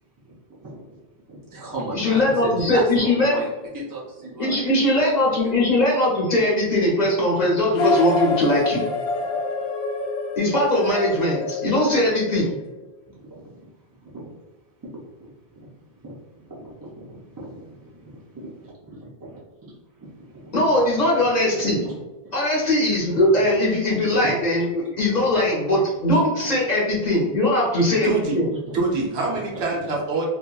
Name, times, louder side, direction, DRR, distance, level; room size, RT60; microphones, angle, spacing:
voice 1, 0.2-0.9 1.3-4.6 4.9-5.1 12.1-12.2 13.2-14.3 14.8-15.7 16.0-18.5 19.0-19.4 20.0-20.8 21.5-22.0 22.2-22.4 23.3-23.5 23.9-24.4 24.9-25.4 25.8-25.9 26.9-27.0 28.7-28.8 29.3-29.8, right 2 dB, 35° right, -7 dB, 0.3 m, -36 dB
voice 2, 1.9-3.4 4.4-8.8 10.4-12.5 20.5-21.8 22.3-28.1 28.3-28.5, left 1 dB, 45° left, -4 dB, 0.6 m, -20 dB
sound 1, 7.7-12.6, left 3 dB, 80° left, 0.8 m, -26 dB
voice 3, 28.0-28.4 28.7-30.3, right 3 dB, 75° right, -1 dB, 0.9 m, -25 dB
2.8 x 2.2 x 2.2 m, 1.1 s
omnidirectional pair, 1.1 m